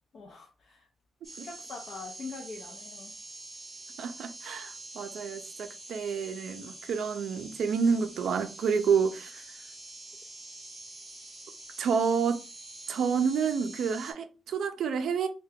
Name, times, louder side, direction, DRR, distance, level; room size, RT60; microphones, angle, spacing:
voice 1, 0.1-0.9 1.4-3.1, left 4 dB, 40° left, 0.5 m, -43 dB
sound 1, 1.2-14.1, right 2 dB, 10° right, 1.3 m, -46 dB
voice 2, 4.0-9.4 11.8-12.4 12.9-15.3, right 6 dB, 65° right, 0.4 m, -29 dB
2.8 x 2.2 x 3.4 m
wide cardioid pair, 175°, 0 cm